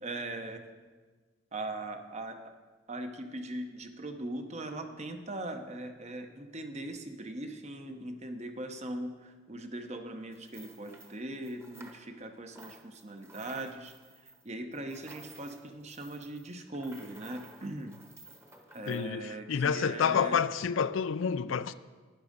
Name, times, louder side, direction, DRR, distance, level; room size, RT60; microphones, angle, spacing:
voice 1, 0.0-0.6 1.5-2.4 2.9-13.9 14.4-17.9 18.7-20.4, right 1 dB, 35° right, 0.9 m, -40 dB
sound 1, 10.3-12.3 12.5-19.0, right 2 dB, 15° right, 1.1 m, -54 dB
voice 2, 18.9-21.7, left 6 dB, 80° left, 0.4 m, -29 dB
11.5 x 9.7 x 5.2 m
head